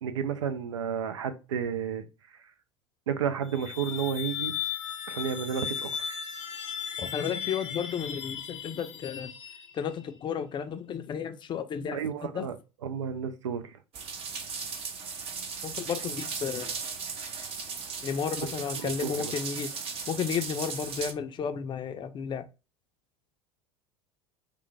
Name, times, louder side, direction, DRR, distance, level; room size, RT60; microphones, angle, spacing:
voice 1, 0.0-2.1 3.1-4.5 5.1-6.1 11.9-12.6 12.8-13.8 18.8-19.3, right 7 dB, 80° right, 0.4 m, -32 dB
sound 1, 3.4-10.1, left 9 dB, 75° left, 0.7 m, -36 dB
voice 2, 7.0-9.3 9.7-12.5 15.6-16.8 18.0-19.7 20.1-22.5, left 7 dB, 30° left, 0.4 m, -33 dB
sound 2, 13.9-21.1, right 5 dB, 40° right, 0.6 m, -37 dB
3.1 x 2.0 x 3.2 m
hypercardioid pair, 75°, 15 cm